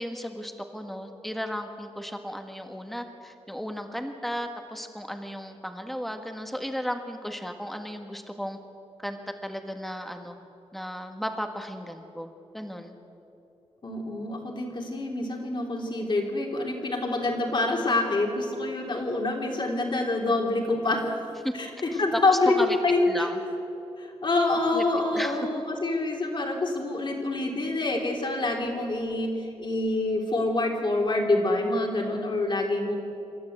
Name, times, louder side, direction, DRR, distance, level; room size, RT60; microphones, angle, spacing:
voice 1, 0.0-8.6 9.0-10.4 10.7-12.9 21.4-21.5 21.9-22.0 22.3-22.8 23.1-23.4 24.7-24.8 25.1-25.4, equal, ahead, 5 dB, 1.7 m, -34 dB
voice 2, 13.8-21.0 21.6-23.3 24.0-33.0, left 2 dB, 45° left, 1 dB, 3.6 m, -26 dB
27.0 x 13.0 x 8.1 m, 2.9 s
wide cardioid pair, 115°, 11 cm